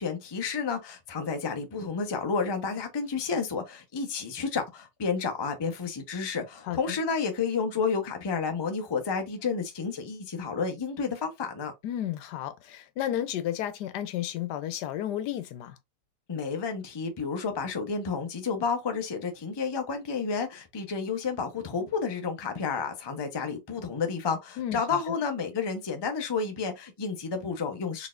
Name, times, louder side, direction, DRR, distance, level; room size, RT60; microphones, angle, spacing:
voice 1, 0.0-11.7 16.3-28.1, left 5 dB, 30° left, 0.4 m, -31 dB
voice 2, 6.6-7.0 11.8-15.8 24.6-24.8, left 11 dB, 90° left, 1.2 m, -32 dB
4.1 x 3.4 x 2.4 m
omnidirectional pair, 1.7 m